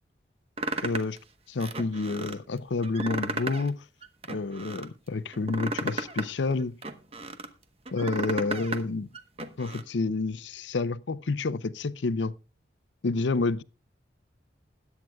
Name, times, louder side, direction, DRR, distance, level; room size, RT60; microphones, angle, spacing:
sound 1, 0.6-1.2 1.6-2.4 2.8-3.7 4.0-4.9 5.3-7.5 7.9-8.8 9.1-9.8, right 2 dB, 35° right, 1.0 m, -34 dB
voice 1, 0.8-1.2 1.5-3.8 4.3-6.7 7.9-9.1 9.6-12.3 13.0-13.6, left 3 dB, 90° left, 0.6 m, -29 dB
21.0 x 9.1 x 2.3 m
head